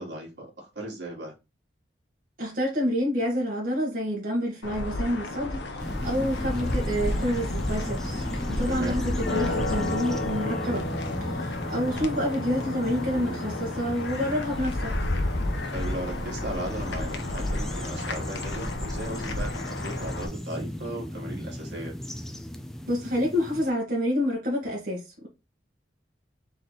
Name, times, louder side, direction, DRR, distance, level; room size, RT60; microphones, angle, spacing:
voice 1, 0.0-1.3 8.7-9.0 13.2-13.7 15.7-21.9, right 1 dB, 70° right, 1.9 m, -37 dB
voice 2, 2.4-10.9 11.2-15.1 22.9-25.3, equal, 50° right, 1.6 m, -28 dB
sound 1, 4.6-20.3, left 2 dB, 70° left, 0.8 m, -31 dB
sound 2, 5.8-23.7, equal, ahead, 0.4 m, -36 dB
4.0 x 3.2 x 3.9 m
head